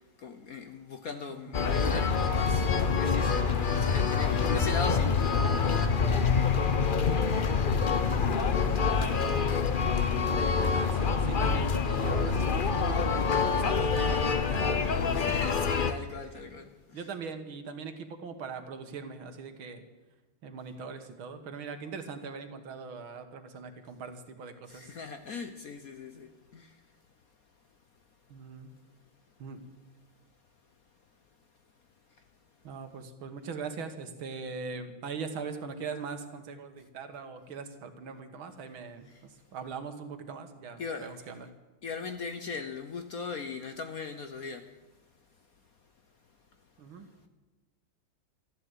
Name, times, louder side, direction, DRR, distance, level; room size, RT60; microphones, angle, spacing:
voice 1, 0.0-6.2 15.1-17.0 24.7-26.8 39.1-39.3 40.8-41.3 41.8-44.7 46.9-47.0, left 4 dB, 55° left, 1.1 m, -40 dB
sound 1, 1.5-15.9, left 5 dB, 80° left, 0.4 m, -26 dB
voice 2, 10.0-10.4 10.7-13.1 13.5-16.5 16.9-19.8 20.4-24.9 28.3-28.7 29.4-29.6 32.6-39.1 39.5-41.5 46.8-47.1, right 5 dB, 70° right, 2.2 m, -41 dB
13.5 x 11.5 x 8.1 m
omnidirectional pair, 2.3 m